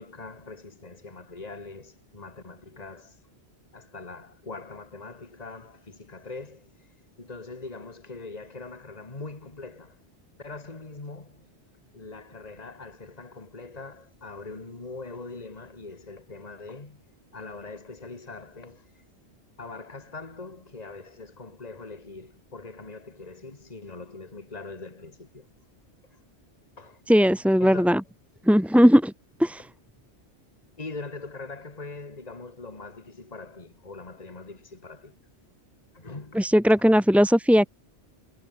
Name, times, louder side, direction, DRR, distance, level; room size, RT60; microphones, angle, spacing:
voice 1, 0.0-3.2 3.7-6.7 7.2-10.0 10.4-11.5 11.9-17.0 17.3-18.9 19.6-25.5 26.8-27.0 27.6-28.0 30.8-35.1 35.9-36.4, left 3 dB, 35° left, 2.4 m, -42 dB
voice 2, 27.1-28.0 28.5-29.1 29.4-29.6 36.3-37.7, equal, ahead, 0.6 m, -18 dB
omnidirectional pair, 1.2 m